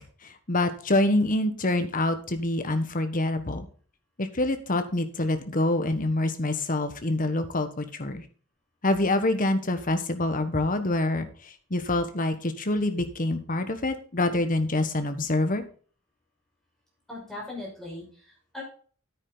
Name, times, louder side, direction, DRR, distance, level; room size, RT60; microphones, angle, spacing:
voice 1, 0.2-3.7 4.2-8.2 8.8-15.6, left 2 dB, 40° left, 9 dB, 1.3 m, -26 dB
voice 2, 17.1-18.6, left 2 dB, ahead, -5 dB, 6.0 m, -39 dB
9.9 x 9.3 x 4.0 m, 0.42 s
head